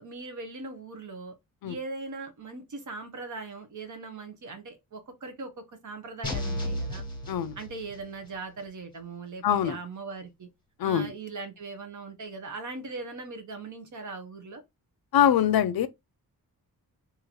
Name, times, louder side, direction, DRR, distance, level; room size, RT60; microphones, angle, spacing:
voice 1, 0.0-1.3 1.6-7.0 7.6-10.5 10.8-14.6, right 3 dB, 55° right, 1.0 m, -40 dB
sound 1, 6.2-8.1, left 1 dB, 15° left, 1.4 m, -34 dB
voice 2, 9.4-9.8 10.8-11.1 15.1-15.9, left 9 dB, 75° left, 0.5 m, -23 dB
3.0 x 2.9 x 3.9 m
wide cardioid pair, 155°, 36 cm